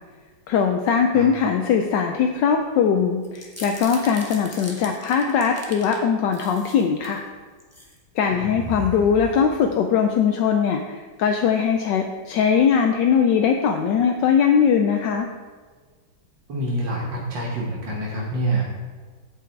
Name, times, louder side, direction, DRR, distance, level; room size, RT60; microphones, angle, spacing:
voice 1, 0.5-7.2 8.2-15.3, left 7 dB, 75° left, 4 dB, 1.3 m, -20 dB
sound 1, 3.2-6.0 6.3-7.2 7.6-7.9 8.3-9.9, equal, 10° left, 0.9 m, -37 dB
voice 2, 16.5-18.7, right 1 dB, 75° right, -3 dB, 2.0 m, -26 dB
8.2 x 7.7 x 4.6 m, 1.5 s
omnidirectional pair, 2.0 m